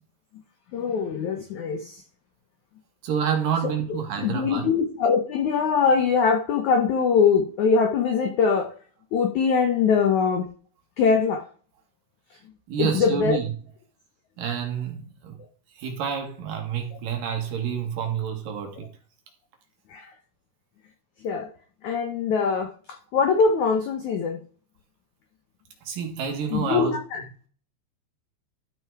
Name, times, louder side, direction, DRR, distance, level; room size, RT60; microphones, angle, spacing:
voice 1, 0.7-2.0 3.6-3.7 4.2-8.7 9.1-10.4 11.0-11.4 12.8-13.4 19.9-20.1 21.2-21.5 21.8-22.7 23.1-24.4 26.5-27.2, left 5 dB, 75° left, 1.7 m, -22 dB
voice 2, 3.0-4.7 12.7-13.5 14.4-15.3 15.7-18.9 25.8-27.3, right 7 dB, 60° right, 3.1 m, -28 dB
13.0 x 5.8 x 4.8 m
omnidirectional pair, 4.9 m